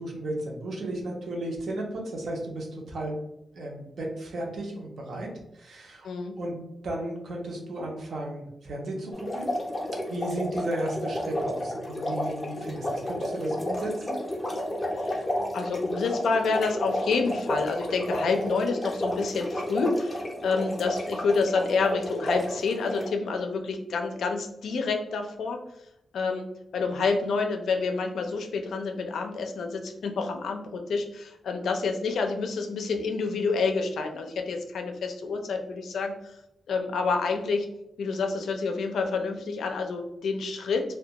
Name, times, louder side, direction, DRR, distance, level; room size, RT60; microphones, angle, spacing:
voice 1, 0.0-3.2 3.5-5.3 5.5-6.1 6.4-6.6 6.8-9.5 10.1-14.2, right 1 dB, 60° right, 0 dB, 0.6 m, -34 dB
sound 1, 9.1-23.1, left 1 dB, 15° left, 0.5 m, -32 dB
voice 2, 15.5-25.6 26.1-26.5 26.7-36.3 36.7-37.7 38.0-40.8, left 4 dB, 90° left, 4 dB, 0.4 m, -28 dB
2.2 x 2.2 x 2.8 m, 0.83 s
wide cardioid pair, 165°, 0 cm